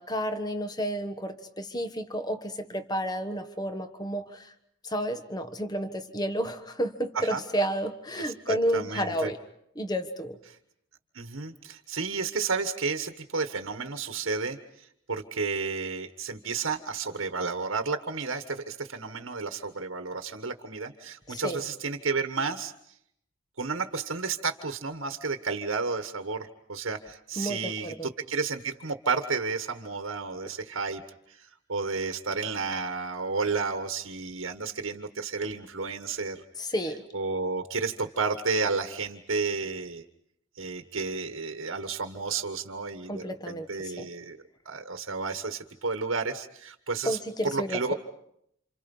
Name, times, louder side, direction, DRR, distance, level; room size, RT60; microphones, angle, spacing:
voice 1, 0.0-4.5 4.8-9.4 9.7-10.4 21.3-21.6 27.4-28.1 36.6-37.0 43.1-44.1 47.0-47.9, equal, 20° left, 8 dB, 1.4 m, -31 dB
voice 2, 8.2-9.3 11.1-22.7 23.6-31.0 31.3-36.4 37.1-40.0 40.6-44.4 44.6-47.2 47.4-47.9, right 4 dB, 70° right, 6 dB, 1.4 m, -32 dB
29.0 x 28.0 x 5.5 m, 0.75 s
head